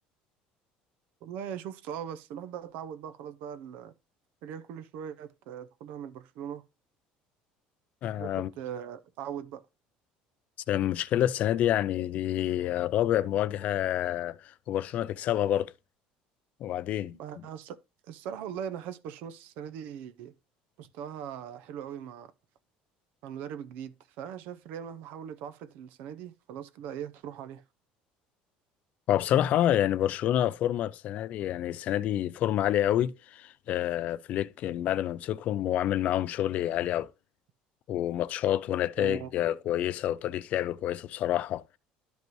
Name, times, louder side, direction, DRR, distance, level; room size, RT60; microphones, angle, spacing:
voice 1, 1.2-3.9 4.4-6.6 8.1-9.6 17.1-17.8 18.1-20.3 20.8-22.3 23.2-27.6 39.0-39.3, right 9 dB, 70° right, 0.8 m, -40 dB
voice 2, 8.0-8.5 10.7-14.4 14.7-15.7 16.6-17.1 29.1-37.1 37.9-41.6, left 12 dB, 50° left, 0.4 m, -28 dB
12.0 x 5.2 x 3.1 m
cardioid pair, 135°, 3 cm